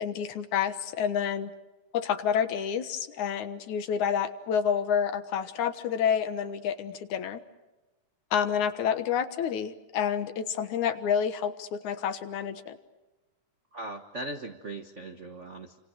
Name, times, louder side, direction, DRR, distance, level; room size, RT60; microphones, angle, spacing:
voice 1, 0.0-1.5 1.9-7.4 8.3-12.8, left 8 dB, 70° left, 10 dB, 2.7 m, -29 dB
voice 2, 13.7-15.8, right 2 dB, 60° right, 5 dB, 0.7 m, -39 dB
29.0 x 26.5 x 6.4 m, 1.1 s
omnidirectional pair, 3.6 m